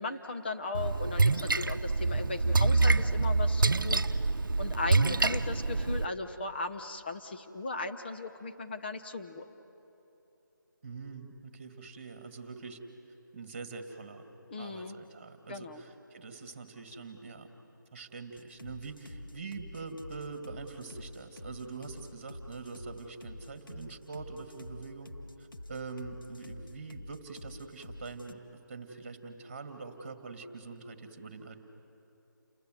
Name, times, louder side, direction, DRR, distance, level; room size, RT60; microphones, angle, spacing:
voice 1, 0.0-4.0 4.6-9.5 14.5-15.0 15.5-15.8, left 3 dB, 30° left, 6 dB, 1.2 m, -37 dB
Splash splatter, 0.7-6.0, right 3 dB, 85° right, 0.8 m, -26 dB
voice 2, 10.8-12.8 13.3-14.2 14.6-17.5 17.9-25.1 25.4-31.6, right 4 dB, 30° right, 6 dB, 2.2 m, -44 dB
sound 1, 18.4-28.3, left 1 dB, 90° left, 1.9 m, -47 dB
29.5 x 22.0 x 7.8 m, 3.0 s
figure-of-eight pair, 170°, 11 cm